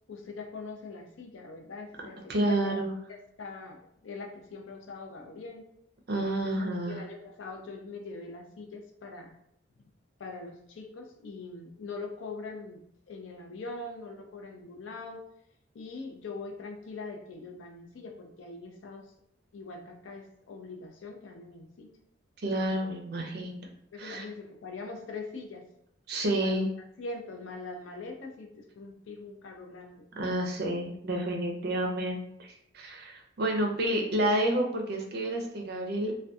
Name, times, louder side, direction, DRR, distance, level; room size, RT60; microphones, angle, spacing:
voice 1, 0.1-2.8 3.4-5.6 6.4-6.5 6.9-9.4 10.2-12.8 13.1-15.2 15.7-19.0 19.5-21.9 23.9-25.6 26.3-26.7 27.0-30.1 33.9-34.1, left 3 dB, 80° left, 3 dB, 0.4 m, -42 dB
voice 2, 2.3-2.9 6.1-7.0 22.4-23.7 24.0-24.3 26.1-26.7 30.2-36.1, right 1 dB, 55° right, 2 dB, 0.5 m, -30 dB
2.5 x 2.2 x 2.3 m, 0.74 s
head